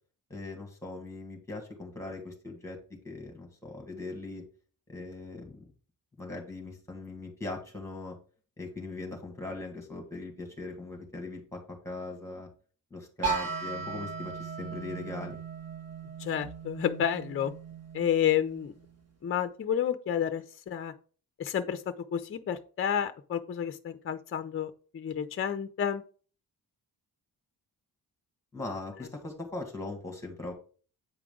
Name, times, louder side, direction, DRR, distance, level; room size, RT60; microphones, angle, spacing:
voice 1, 0.3-2.8 3.0-4.4 4.9-5.6 6.2-8.2 8.6-12.5 12.9-15.4 28.5-30.5, left 2 dB, 5° left, 2 dB, 1.7 m, -40 dB
sound 1, 13.2-19.0, right 5 dB, 40° right, 1.2 m, -37 dB
voice 2, 16.2-17.5 17.9-18.7 19.2-20.9 21.4-26.0, left 9 dB, 35° left, 10 dB, 0.4 m, -30 dB
8.4 x 4.9 x 3.7 m, 0.39 s
wide cardioid pair, 175°, 38 cm